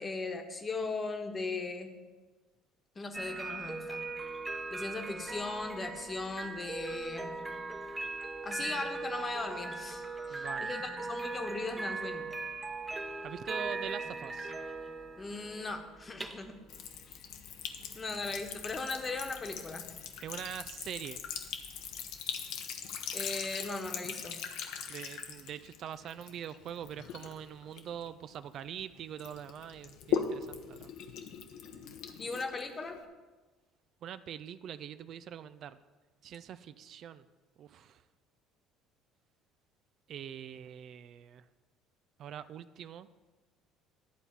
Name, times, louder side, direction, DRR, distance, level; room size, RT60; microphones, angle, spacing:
voice 1, 0.0-1.9 2.9-4.1 4.7-7.3 8.4-12.3 15.2-16.6 17.1-17.2 17.9-19.9 23.1-24.4 32.2-33.0, left 3 dB, 30° left, 5 dB, 1.2 m, -38 dB
sound 1, 3.1-22.2, right 3 dB, 20° right, 0.9 m, -40 dB
voice 2, 10.3-10.7 13.2-14.5 20.2-21.2 24.9-30.9 34.0-35.8 36.2-37.3 37.6-38.0 40.1-41.5 42.2-43.1, right 9 dB, 55° right, 13 dB, 0.4 m, -43 dB
Sink (filling or washing) / Trickle dribble, 16.7-28.8 29.2-33.0, left 7 dB, 70° left, 0.8 m, -40 dB
11.0 x 4.1 x 7.1 m, 1.3 s
hypercardioid pair, 65°, 0 cm